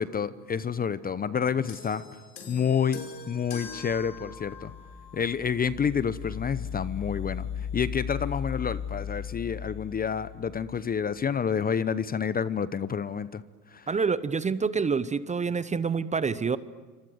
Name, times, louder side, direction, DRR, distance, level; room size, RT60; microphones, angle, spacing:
voice 1, 0.0-2.0 2.5-4.7 5.1-13.4 13.7-13.9, left 7 dB, 20° left, 16 dB, 0.8 m, -29 dB
sound 1, 1.7-5.3 6.2-6.3, left 4 dB, 90° left, 5.6 m, -44 dB
sound 2, 3.5-11.0, left 8 dB, 75° left, 7.5 m, -37 dB
voice 2, 13.9-16.6, right 5 dB, 15° right, 16 dB, 0.8 m, -27 dB
28.5 x 25.5 x 7.9 m, 1.4 s
hypercardioid pair, 95°, 49 cm